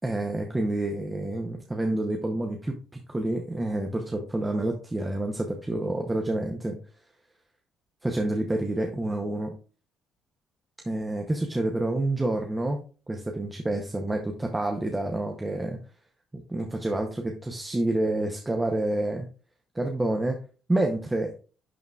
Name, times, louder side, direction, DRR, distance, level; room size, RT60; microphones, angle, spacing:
voice 1, 0.0-6.8 8.0-9.5 10.9-12.8 13.1-15.8 16.5-19.3 19.7-20.4 20.7-21.3, right 1 dB, 10° right, 3 dB, 0.8 m, -28 dB
11.0 x 3.7 x 2.4 m, 0.37 s
cardioid pair, 135°, 0 cm